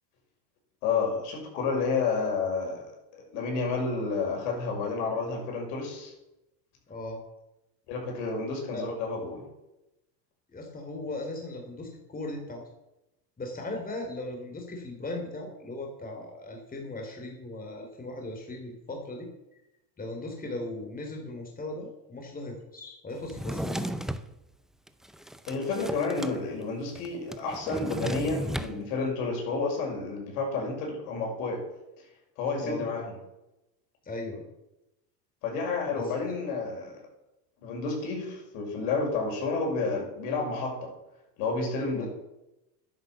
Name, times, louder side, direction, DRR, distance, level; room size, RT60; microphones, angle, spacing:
voice 1, 0.8-6.1 7.9-9.4 25.5-31.6 32.4-33.2 35.4-37.0 37.6-40.9 41.4-42.1, left 4 dB, 65° left, 1 dB, 6.1 m, -30 dB
voice 2, 6.9-7.2 8.7-8.9 10.5-12.6 13.4-19.3 20.0-23.8 32.6-32.8 34.0-34.4 35.9-36.1 42.0-42.1, left 2 dB, 15° left, 1 dB, 3.3 m, -38 dB
Drawer open or close, 23.2-24.3 24.9-26.4 26.6-26.7 26.9-28.7, equal, ahead, 0.5 m, -34 dB
10.5 x 10.0 x 7.5 m, 0.93 s
supercardioid pair, 110°, 50 cm